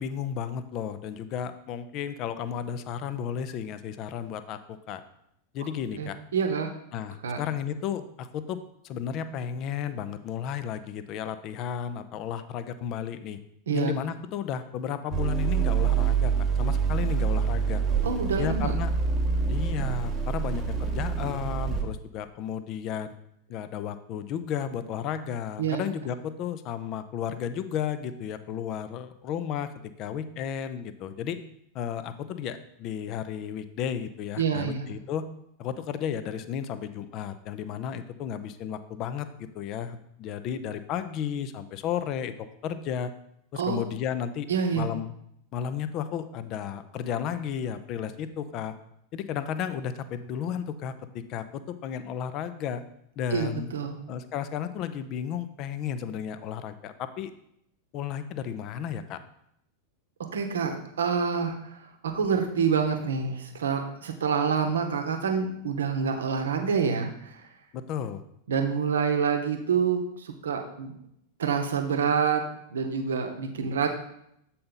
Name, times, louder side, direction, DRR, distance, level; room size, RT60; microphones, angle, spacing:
voice 1, 0.0-5.0 5.5-6.2 6.9-8.6 8.8-13.4 13.7-17.8 18.4-18.9 19.5-23.1 23.5-29.7 30.0-31.4 31.7-35.2 35.6-42.3 42.6-43.1 43.5-44.5 44.7-45.1 45.5-48.7 49.1-52.8 53.2-53.7 54.1-57.3 57.9-59.2 67.7-68.2, left 8 dB, 40° left, 11 dB, 0.4 m, -33 dB
voice 2, 6.0-6.7 7.2-7.4 13.7-13.9 18.0-18.7 25.6-25.8 34.4-34.9 43.5-43.8 44.5-44.9 53.3-54.0 60.3-67.4 68.5-70.9 71.4-73.9, right 6 dB, 65° right, 5 dB, 0.8 m, -27 dB
sound 1, 15.1-21.8, right 6 dB, 20° right, 0.9 m, -26 dB
7.6 x 4.1 x 3.8 m, 0.76 s
figure-of-eight pair, 90°, 0 cm